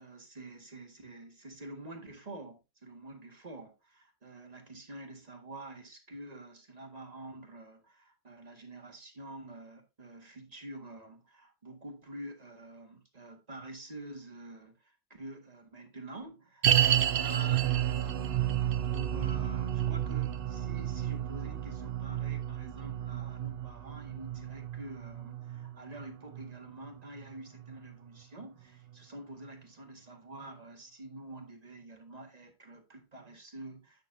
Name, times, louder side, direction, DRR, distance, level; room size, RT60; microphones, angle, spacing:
voice 1, 0.0-34.0, right 2 dB, 30° right, 1.7 m, -47 dB
sound 1, 16.6-27.9 28.2-28.3 28.9-29.0, right 11 dB, 60° right, 0.6 m, -31 dB
9.7 x 6.8 x 2.7 m
omnidirectional pair, 1.5 m